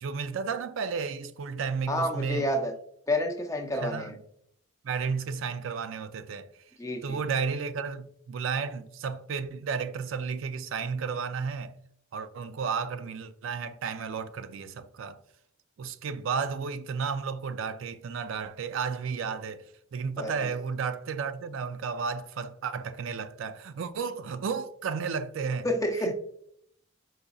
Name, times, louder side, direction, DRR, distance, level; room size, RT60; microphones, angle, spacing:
voice 1, 0.0-2.5 3.8-4.2 4.8-6.5 7.0-11.7 12.1-15.2 15.8-19.6 19.9-25.7 26.0-26.1, right 5 dB, 75° right, 0.4 m, -33 dB
voice 2, 1.9-2.8 3.1-4.2 6.8-7.2 20.2-20.5 25.6-26.1, left 1 dB, 15° left, 0.5 m, -29 dB
5.0 x 4.0 x 2.3 m
head